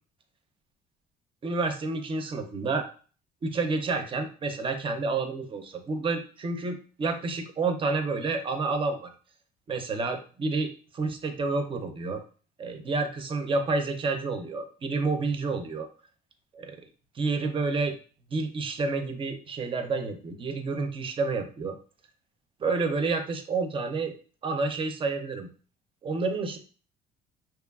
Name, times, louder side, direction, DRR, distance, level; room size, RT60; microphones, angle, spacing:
voice 1, 1.4-2.9 3.4-9.1 9.7-12.2 12.6-15.9 16.5-16.8 17.1-18.0 18.3-21.8 22.6-24.1 24.4-25.5 26.0-26.6, right 3 dB, 30° right, 6 dB, 0.4 m, -29 dB
2.9 x 2.2 x 2.3 m, 0.38 s
cardioid pair, 110°, 17 cm